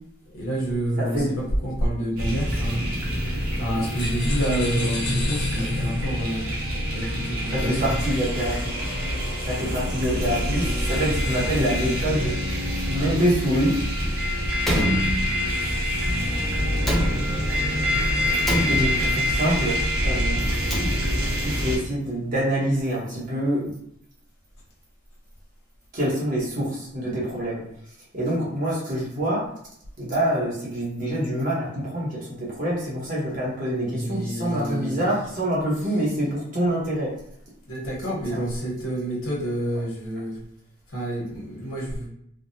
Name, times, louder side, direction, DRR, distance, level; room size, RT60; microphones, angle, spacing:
voice 1, 0.3-1.2 1.6-2.9 3.6-6.4 6.9-7.8 21.2-21.3 33.9-35.0 37.7-40.4 40.9-42.1, right 1 dB, 75° left, -3 dB, 1.0 m, -28 dB
voice 2, 1.0-1.3 7.5-8.7 9.4-12.3 12.9-13.8 18.7-20.5 21.4-23.7 25.9-27.6 28.1-29.5 30.0-37.1 38.3-38.4, equal, 40° right, -6 dB, 1.0 m, -26 dB
sound 1, 2.2-21.8, equal, 85° right, 0.9 m, -26 dB
sound 2, 4.0-6.1, left 3 dB, 55° left, 0.6 m, -35 dB
Slam, 14.6-15.7 16.8-17.7 18.4-19.3 20.4-21.4, equal, ahead, 0.5 m, -27 dB
3.5 x 2.1 x 2.7 m, 0.72 s
head